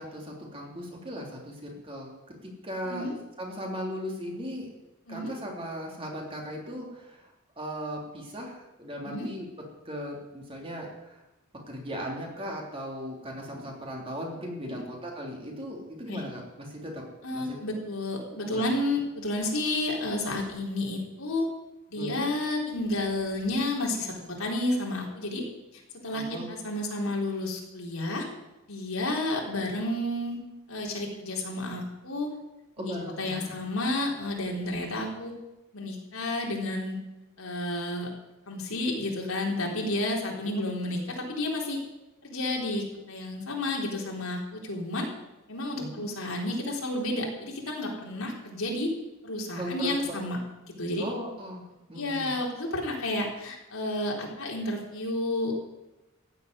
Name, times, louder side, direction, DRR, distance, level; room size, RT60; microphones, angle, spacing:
voice 1, 0.0-2.1 2.4-3.1 3.4-4.7 5.1-7.3 7.6-9.5 9.8-11.2 11.7-16.4 16.7-17.0 17.3-17.6 18.5-18.7 21.9-22.3 26.1-26.5 32.8-33.5 40.5-40.6 45.7-46.0 49.6-49.9 51.0-52.3, equal, 25° right, 0 dB, 3.3 m, -37 dB
voice 2, 17.2-21.5 21.9-25.5 26.0-28.3 28.7-30.4 30.7-32.3 32.8-35.3 35.7-37.0 37.4-38.1 38.5-41.8 42.2-45.1 45.5-48.9 49.2-50.4 50.6-51.0 51.9-55.6, left 1 dB, 85° left, -1 dB, 3.9 m, -31 dB
15.0 x 8.1 x 9.5 m, 1.0 s
head